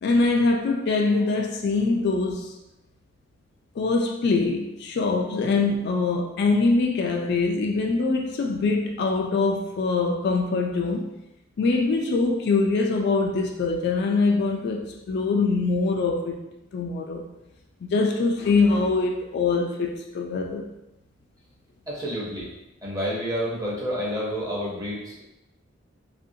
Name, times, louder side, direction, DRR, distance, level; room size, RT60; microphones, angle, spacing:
voice 1, 0.0-2.5 3.8-11.1 11.6-16.4 16.7-17.2 17.8-20.7, left 3 dB, 60° left, 2 dB, 0.3 m, -23 dB
voice 2, 21.9-22.5 22.8-25.2, equal, 20° right, -6 dB, 0.7 m, -29 dB
2.8 x 2.5 x 2.6 m, 0.92 s
head